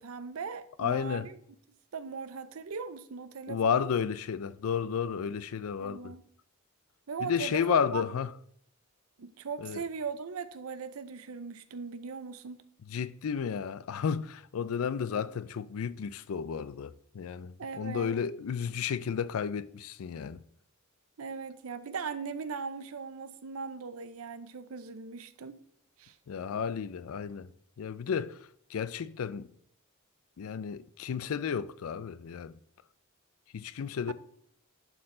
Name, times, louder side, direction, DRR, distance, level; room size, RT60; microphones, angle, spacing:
voice 1, 0.0-1.4 1.9-3.9 5.8-6.2 7.1-8.0 9.2-12.6 17.6-18.1 21.2-25.6 26.0-26.2 34.1-34.2, right 5 dB, 80° right, 0.6 m, -39 dB
voice 2, 0.8-1.3 3.5-6.1 7.2-8.3 9.6-9.8 12.9-20.4 26.3-27.5 27.8-29.5 30.4-32.6 33.5-34.1, left 7 dB, 75° left, 0.4 m, -32 dB
10.5 x 4.5 x 3.7 m
head